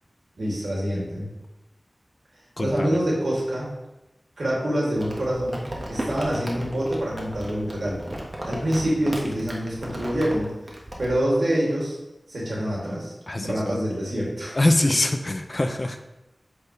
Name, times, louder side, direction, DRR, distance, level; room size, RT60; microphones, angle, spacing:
voice 1, 0.4-1.3 2.6-3.7 4.4-8.1 8.4-10.5 11.0-12.0 12.3-15.0, equal, 85° right, -5 dB, 2.6 m, -26 dB
voice 2, 2.6-3.0 13.3-13.8 14.6-16.1, left 1 dB, 45° left, 7 dB, 0.7 m, -24 dB
Crumpling crinkling, 5.0-11.1, right 1 dB, 40° right, 1.5 m, -35 dB
8.4 x 4.8 x 3.3 m, 0.97 s
wide cardioid pair, 50°, 0 cm